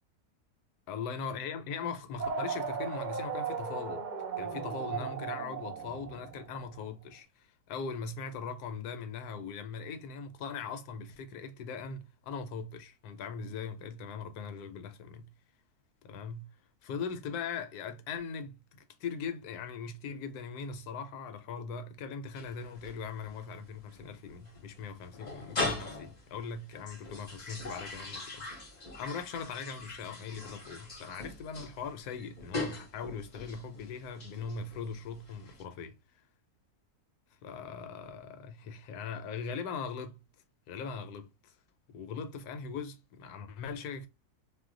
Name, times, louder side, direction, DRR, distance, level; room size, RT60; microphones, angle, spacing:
voice 1, 0.9-4.0 4.4-15.3 16.0-16.5 16.8-18.6 19.0-28.5 29.0-36.0 37.4-40.2 40.7-41.5 41.9-44.1, left 5 dB, 75° left, 1.1 m, -40 dB
sound 1, 2.2-6.7, right 6 dB, 80° right, 0.4 m, -36 dB
sound 2, 22.3-35.6, left 2 dB, 40° left, 0.6 m, -41 dB
2.6 x 2.1 x 3.7 m
omnidirectional pair, 1.7 m